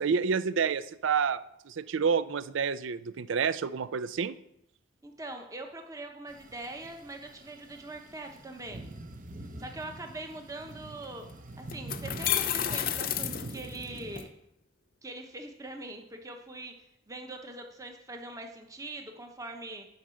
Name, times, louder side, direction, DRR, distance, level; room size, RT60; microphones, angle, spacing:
voice 1, 0.0-1.4 1.7-4.4, right 6 dB, 75° right, 16 dB, 0.5 m, -28 dB
voice 2, 5.0-8.9 9.6-11.3 11.6-14.3 15.0-16.7 17.1-19.9, right 2 dB, 15° right, 4 dB, 0.9 m, -42 dB
sound 1, 6.3-14.3, right 2 dB, 40° right, 0.8 m, -44 dB
sound 2, 11.0-11.1 11.7-14.2, left 10 dB, 45° left, 0.6 m, -31 dB
10.5 x 5.5 x 6.4 m, 0.80 s
head